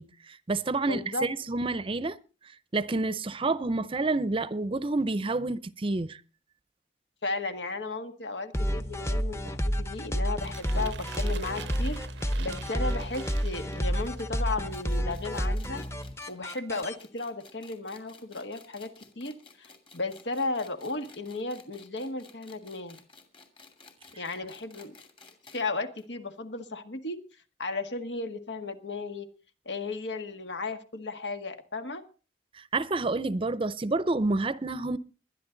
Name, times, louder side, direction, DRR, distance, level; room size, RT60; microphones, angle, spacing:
voice 1, 0.0-2.2 2.7-6.2 32.5-35.0, right 3 dB, 30° right, 0.6 m, -29 dB
voice 2, 0.8-1.3 7.2-12.0 12.4-15.8 16.3-18.9 19.2-23.0 24.1-24.9 25.5-27.2 27.6-29.3 29.7-32.0, left 3 dB, 80° left, 1.8 m, -35 dB
sound 1, 8.5-16.9, equal, 15° left, 0.9 m, -30 dB
sound 2, 10.4-14.4, right 7 dB, 75° right, 0.6 m, -45 dB
sound 3, 14.4-25.7 26.0-26.1 26.3-26.4 27.3-27.4, left 4 dB, 30° left, 2.4 m, -54 dB
21.0 x 11.5 x 3.9 m
head